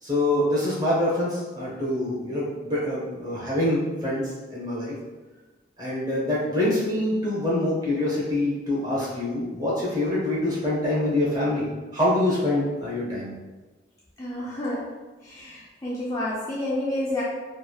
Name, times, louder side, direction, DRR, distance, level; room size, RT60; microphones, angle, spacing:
voice 1, 0.0-4.9 5.8-11.6 11.9-13.3, left 1 dB, 20° right, -7 dB, 0.8 m, -25 dB
voice 2, 14.2-14.9 15.2-17.2, left 1 dB, 20° left, -7 dB, 0.3 m, -29 dB
3.1 x 2.2 x 2.3 m, 1.2 s
head